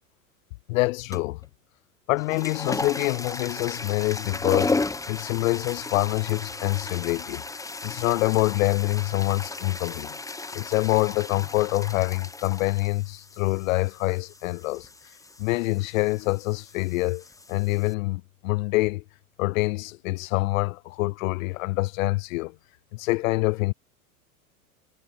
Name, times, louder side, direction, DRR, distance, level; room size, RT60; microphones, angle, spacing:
voice 1, 0.7-1.4 2.1-4.8 5.1-7.4 7.8-10.2 10.5-14.9 15.4-19.0 19.4-22.6 22.9-23.7, left 21 dB, 60° left, 0.5 m, -26 dB
sound 1, 1.1-1.5 2.1-17.9, left 3 dB, 5° left, 1.0 m, -35 dB
hypercardioid pair, 95°, 45 cm